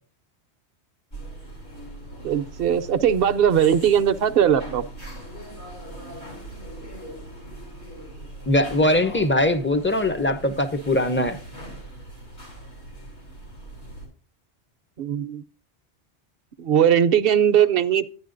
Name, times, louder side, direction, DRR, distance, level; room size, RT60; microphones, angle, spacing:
sound 1, 1.1-14.1, right 1 dB, 80° left, 4.2 m, -40 dB
voice 1, 2.2-4.8 15.0-15.4 16.6-18.1, right 9 dB, 60° right, 0.8 m, -19 dB
voice 2, 8.5-11.4, left 1 dB, 15° left, 0.6 m, -21 dB
10.0 x 9.9 x 2.5 m
omnidirectional pair, 1.1 m